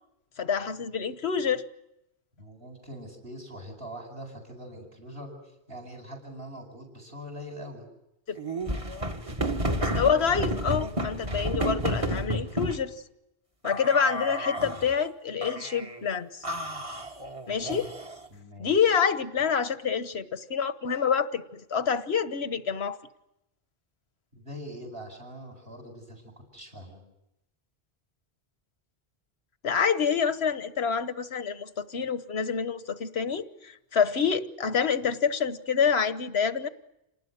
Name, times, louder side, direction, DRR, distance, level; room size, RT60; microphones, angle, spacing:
voice 1, 0.4-1.6 8.3-8.4 9.8-12.9 13.6-16.4 17.5-17.9 18.6-23.0 29.6-36.7, left 6 dB, 80° left, 12 dB, 1.5 m, -27 dB
voice 2, 2.4-5.3 5.7-7.9 18.3-19.0 24.3-26.2 26.5-27.0, equal, 65° right, 3 dB, 8.4 m, -43 dB
sound 1, 8.4-12.8 13.6-14.9 15.4-16.0 16.4-18.3, right 1 dB, 30° right, 1.8 m, -31 dB
28.0 x 19.5 x 9.7 m, 0.88 s
omnidirectional pair, 1.0 m